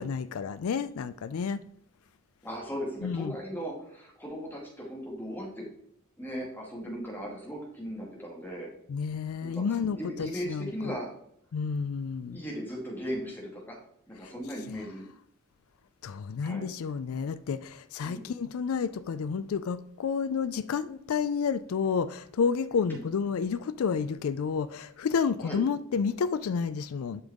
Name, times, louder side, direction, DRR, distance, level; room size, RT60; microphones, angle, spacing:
voice 1, 0.0-1.6 3.0-3.4 8.9-10.9 11.5-12.4 14.2-14.3 16.0-27.2, left 6 dB, 70° left, 0.4 m, -30 dB
voice 2, 2.4-5.7 6.2-8.7 9.4-11.1 12.3-13.8 14.1-15.0 16.4-16.7 18.0-18.3 22.9-23.1 25.4-25.6, equal, 10° left, 2.2 m, -37 dB
11.0 x 5.3 x 3.6 m
head